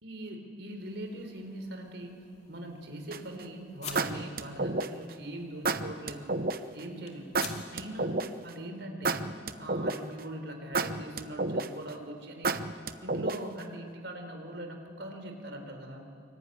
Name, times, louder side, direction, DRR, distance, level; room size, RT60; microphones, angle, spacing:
voice 1, 0.0-2.2 2.5-6.4 6.7-7.4 7.7-8.1 8.4-9.3 9.6-12.6 13.0-16.1, right 1 dB, 65° right, 5 dB, 4.0 m, -41 dB
sound 1, 0.8-8.6, left 6 dB, 35° left, 2.8 m, -50 dB
sound 2, 3.1-3.4 4.0-5.1 5.6-6.6 7.3-8.5 9.0-10.2 10.7-11.9 12.4-13.6, right 3 dB, 50° right, 0.9 m, -30 dB
24.5 x 24.0 x 9.9 m, 2.3 s
head